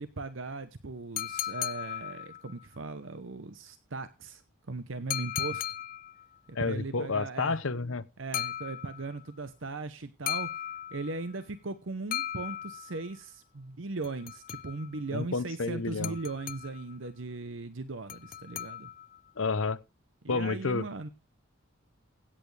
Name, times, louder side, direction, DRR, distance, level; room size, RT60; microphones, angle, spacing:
voice 1, 0.0-4.4 4.7-5.6 6.5-7.6 8.2-10.5 10.9-18.9 20.2-21.1, right 3 dB, 65° right, 0.8 m, -38 dB
sound 1, 1.2-2.6 5.1-6.3 8.3-9.2 10.3-11.3 12.1-13.1 14.0-15.0 16.0-17.0 18.1-19.2, left 11 dB, 45° left, 0.5 m, -37 dB
voice 2, 6.6-8.0 15.1-16.1 19.4-19.8 20.3-20.8, left 4 dB, 70° left, 0.8 m, -30 dB
16.5 x 8.7 x 3.3 m
head